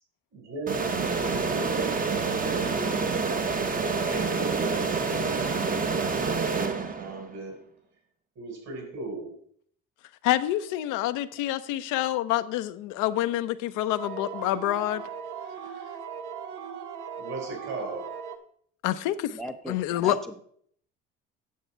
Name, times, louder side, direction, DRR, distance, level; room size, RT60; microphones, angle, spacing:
voice 1, 0.3-1.0 1.3-3.1 3.9-7.6 8.4-9.3 17.2-18.1, right 3 dB, 60° right, 4.3 m, -38 dB
sound 1, 0.7-7.3, right 4 dB, 25° right, 0.9 m, -27 dB
voice 2, 10.2-15.0 18.8-19.4 19.7-20.2, left 14 dB, 80° left, 0.7 m, -27 dB
sound 2, 14.0-18.4, right 7 dB, 80° right, 1.0 m, -38 dB
voice 3, 19.3-20.4, equal, ahead, 0.6 m, -39 dB
9.3 x 7.1 x 4.5 m
supercardioid pair, 80°, 31 cm